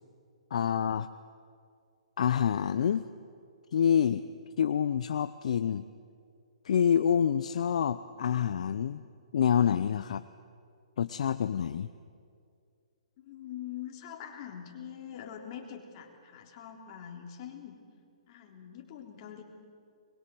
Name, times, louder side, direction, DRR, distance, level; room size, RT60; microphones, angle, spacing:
voice 1, 0.5-1.1 2.2-3.0 3.7-4.3 4.6-5.9 6.6-9.0 9.3-10.2 11.0-11.9, left 8 dB, 65° left, 12 dB, 0.7 m, -27 dB
voice 2, 13.2-17.8 18.3-19.4, left 9 dB, 40° left, 2 dB, 3.5 m, -44 dB
23.0 x 22.0 x 7.8 m, 2.2 s
hypercardioid pair, 140°, 4 cm